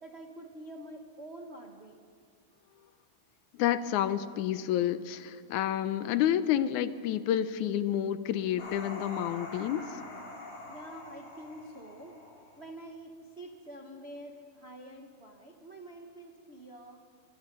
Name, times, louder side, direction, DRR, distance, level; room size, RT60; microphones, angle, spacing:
voice 1, 0.0-1.9 10.7-12.2 12.6-17.0, right 1 dB, 50° right, 2 dB, 0.7 m, -47 dB
voice 2, 3.5-9.9, left 11 dB, 80° left, 13 dB, 2.2 m, -29 dB
sound 1, 8.6-12.8, left 2 dB, 50° left, 4.9 m, -45 dB
25.5 x 24.5 x 5.4 m, 2.1 s
omnidirectional pair, 3.5 m